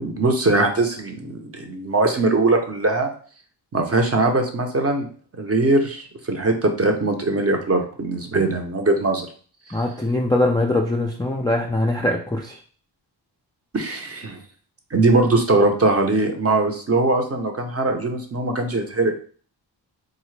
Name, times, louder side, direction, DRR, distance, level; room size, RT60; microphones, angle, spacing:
voice 1, 0.0-3.1 3.7-5.1 5.4-9.3 9.7-9.8 13.7-14.4 14.9-19.1, right 2 dB, 30° right, 4 dB, 0.6 m, -21 dB
voice 2, 9.7-12.6, left 1 dB, 10° left, 0 dB, 0.3 m, -22 dB
3.7 x 2.0 x 3.2 m, 0.43 s
cardioid pair, 80°, 45 cm